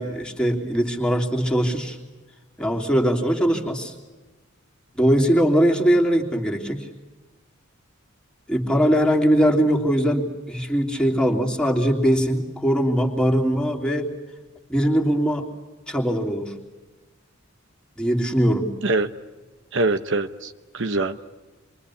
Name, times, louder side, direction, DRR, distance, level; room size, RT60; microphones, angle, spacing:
voice 1, 0.0-2.0 2.6-3.9 4.9-6.9 8.5-14.1 14.7-15.4 15.9-16.5 18.0-18.7, equal, 5° left, 0 dB, 3.2 m, -21 dB
voice 2, 19.7-21.2, right 2 dB, 60° right, 10 dB, 1.0 m, -24 dB
28.5 x 23.5 x 8.5 m, 1.2 s
head